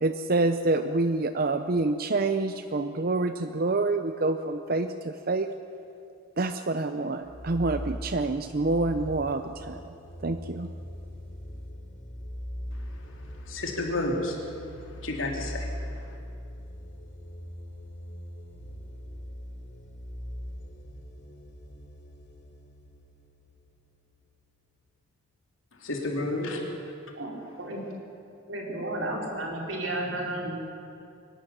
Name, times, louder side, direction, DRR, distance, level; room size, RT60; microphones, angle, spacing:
voice 1, 0.0-5.5 6.4-9.9 10.2-10.7, right 2 dB, 45° right, 9 dB, 0.7 m, -27 dB
sound 1, 7.2-24.6, equal, 60° left, 3.9 m, -41 dB
voice 2, 12.7-16.2 25.8-26.6, left 2 dB, 80° left, 1 dB, 3.5 m, -32 dB
voice 3, 28.5-30.5, right 1 dB, 70° right, -1 dB, 4.6 m, -32 dB
23.0 x 12.5 x 10.0 m, 2.5 s
head